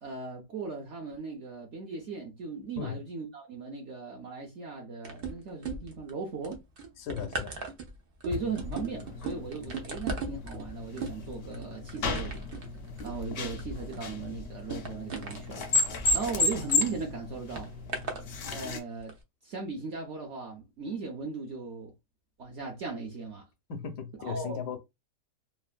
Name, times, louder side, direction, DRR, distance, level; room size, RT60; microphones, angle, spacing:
voice 1, 0.0-6.6 8.2-12.4 13.0-15.6 16.1-17.7 18.5-19.1 19.4-21.9 22.4-23.4 24.2-24.6, right 4 dB, 55° right, 0.8 m, -37 dB
sound 1, 5.0-6.1 6.4-16.8 17.6-18.2 19.0-19.1, right 3 dB, 90° right, 0.5 m, -39 dB
voice 2, 7.0-7.6 23.7-24.8, left 7 dB, 80° left, 1.2 m, -36 dB
sound 2, 8.3-18.8, left 3 dB, 65° left, 0.8 m, -33 dB
3.2 x 2.1 x 2.4 m
omnidirectional pair, 1.8 m